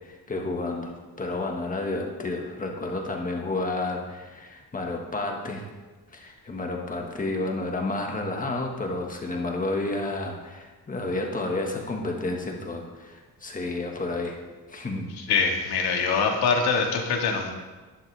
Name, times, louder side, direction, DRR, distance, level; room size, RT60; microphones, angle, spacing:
voice 1, 0.0-5.6 6.1-14.4 14.7-15.1, left 2 dB, 20° left, 1 dB, 1.5 m, -31 dB
voice 2, 15.3-17.5, left 5 dB, 80° left, 2 dB, 1.9 m, -23 dB
11.5 x 11.5 x 3.4 m, 1.3 s
cardioid pair, 160°, 39 cm